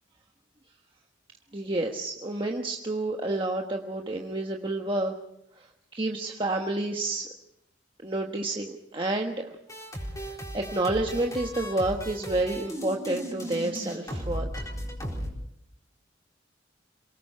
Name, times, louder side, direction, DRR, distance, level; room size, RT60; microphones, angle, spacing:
voice 1, 1.5-5.1 5.6-5.7 5.9-7.3 8.0-9.6 10.1-14.7, right 2 dB, 25° right, 1 dB, 1.3 m, -29 dB
sound 1, 9.7-15.3, equal, 20° left, 4.2 m, -36 dB
28.0 x 19.0 x 5.7 m, 0.80 s
head